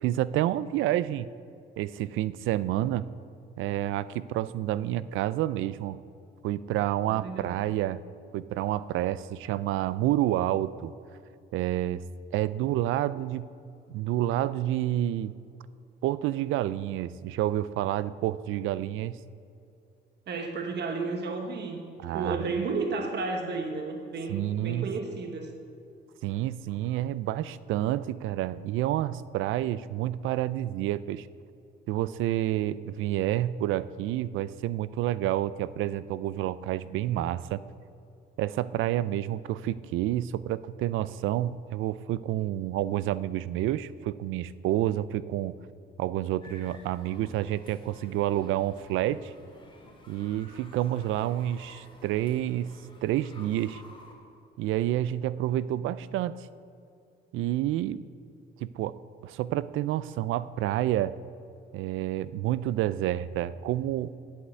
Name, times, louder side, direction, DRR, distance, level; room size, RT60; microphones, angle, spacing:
voice 1, 0.0-1.3 1.8-3.1 3.6-6.0 6.4-8.0 8.3-10.9 11.5-12.0 12.3-13.5 13.9-15.3 16.0-19.2 22.0-22.6 24.3-24.9 26.2-31.3 31.9-37.6 38.4-45.6 46.0-49.3 50.1-52.7 53.0-53.8 54.6-56.5 57.3-58.0 58.6-61.2 61.7-64.1, right 13 dB, 85° right, 17 dB, 0.4 m, -29 dB
voice 2, 7.1-7.7 20.3-21.9 22.1-25.5, right 4 dB, 60° right, 4 dB, 1.2 m, -32 dB
sound 1, 46.4-54.1, left 2 dB, 25° left, 2.6 m, -53 dB
8.4 x 7.9 x 8.1 m, 2.6 s
cardioid pair, 90°, 20 cm